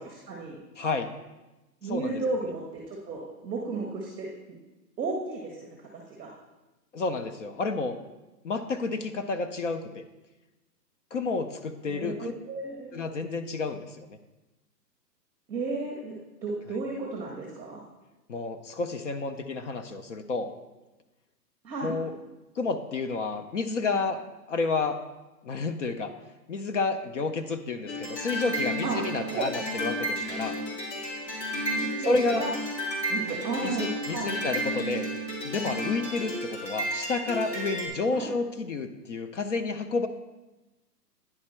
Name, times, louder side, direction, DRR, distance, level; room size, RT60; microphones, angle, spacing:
voice 1, 0.3-0.6 1.8-4.3 5.0-6.3 11.9-12.9 15.5-16.1 16.4-17.8 21.6-21.9 28.8-29.0 29.3-29.5 31.7-32.5 33.1-34.4 38.1-38.3, right 3 dB, ahead, -17 dB, 0.4 m, -33 dB
voice 2, 0.8-1.1 1.8-2.2 6.9-7.9 8.4-9.8 11.1-12.3 12.9-14.2 18.3-20.5 21.8-22.1 22.6-24.2 24.5-25.0 25.4-26.1 26.5-30.6 32.0-32.5 33.3-35.1 35.4-40.1, left 3 dB, 50° left, 8 dB, 0.5 m, -30 dB
sound 1, 27.9-37.9, equal, 90° left, 2.7 m, -32 dB
9.9 x 4.3 x 4.3 m, 1.1 s
hypercardioid pair, 155°, 49 cm